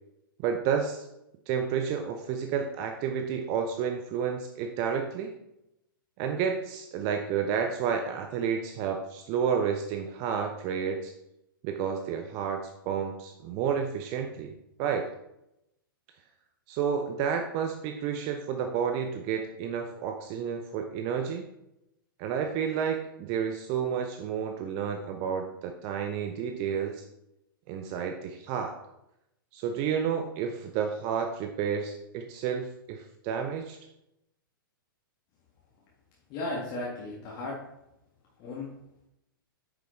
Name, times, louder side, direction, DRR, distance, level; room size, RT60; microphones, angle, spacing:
voice 1, 0.4-1.1 1.5-5.4 6.2-11.1 11.6-14.5 14.8-15.1 16.7-21.5 22.2-27.0 27.7-28.7 29.5-33.8, right 7 dB, 30° right, 5 dB, 0.6 m, -30 dB
voice 2, 36.3-37.6 38.4-38.7, left 2 dB, 35° left, -4 dB, 1.7 m, -35 dB
8.7 x 6.7 x 3.2 m, 0.86 s
figure-of-eight pair, 105°, 12 cm